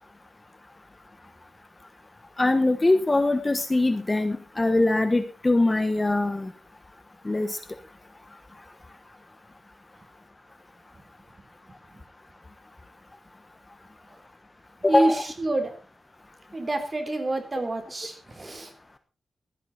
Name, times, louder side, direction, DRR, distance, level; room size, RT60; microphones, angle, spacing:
voice 1, 2.4-6.5 7.2-7.6 14.8-15.2, left 2 dB, 20° left, 9 dB, 1.2 m, -22 dB
voice 2, 11.7-12.0 14.9-15.7 16.5-18.7, right 2 dB, 30° right, 5 dB, 3.5 m, -28 dB
16.0 x 12.0 x 4.2 m, 0.33 s
wide cardioid pair, 135°, 0 cm